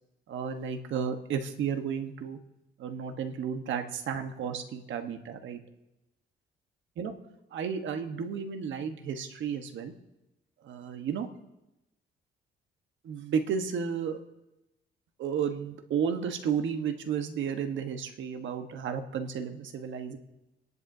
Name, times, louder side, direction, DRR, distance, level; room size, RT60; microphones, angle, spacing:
voice 1, 0.3-2.4 2.8-5.6 7.0-7.1 7.5-9.9 10.6-11.3 13.0-14.2 15.2-20.2, right 7 dB, 70° right, 6 dB, 1.3 m, -32 dB
29.0 x 11.0 x 2.8 m, 0.96 s
cardioid pair, 90°, 20 cm